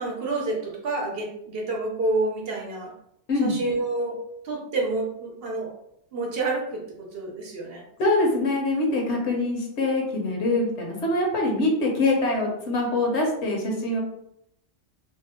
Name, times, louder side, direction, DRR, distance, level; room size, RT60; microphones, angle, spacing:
voice 1, 0.0-2.9 3.4-5.7 6.1-6.8 7.1-7.8, right 2 dB, 60° right, -1 dB, 0.8 m, -28 dB
voice 2, 8.0-14.0, left 2 dB, 65° left, 0 dB, 1.0 m, -24 dB
2.7 x 2.1 x 3.5 m, 0.76 s
omnidirectional pair, 1.2 m